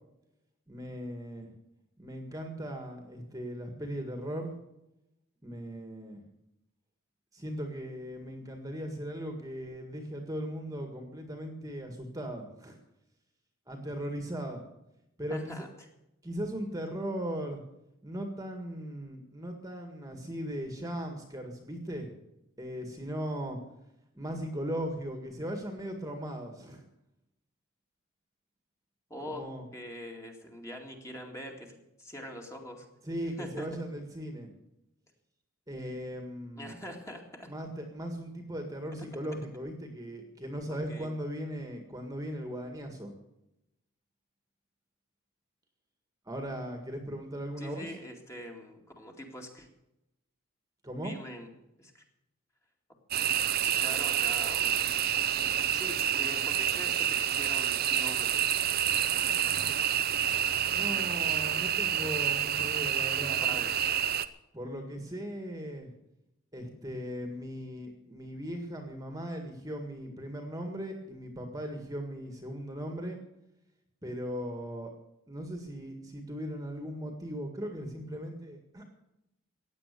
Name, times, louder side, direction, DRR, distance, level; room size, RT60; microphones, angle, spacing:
voice 1, 0.7-1.5 2.0-4.5 5.4-6.2 7.3-12.8 13.7-14.7 15.2-15.6 16.2-17.6 18.0-22.1 22.6-23.6 24.1-26.8 29.3-29.6 33.0-34.5 35.7-36.8 37.5-43.1 46.3-47.9 50.8-51.2 60.7-63.6 64.5-65.9 66.5-73.2 74.0-74.9 75.3-78.8, equal, 15° right, 4 dB, 1.8 m, -38 dB
voice 2, 15.3-15.7 29.1-32.9 33.4-33.7 36.6-37.5 40.7-41.2 47.6-49.7 51.0-51.5 51.8-52.0 53.6-54.8 55.7-58.4 63.2-63.8, equal, 15° left, 2 dB, 2.3 m, -43 dB
sound 1, 53.1-64.3, right 10 dB, 45° right, 0.7 m, -28 dB
16.0 x 9.8 x 6.8 m, 0.88 s
head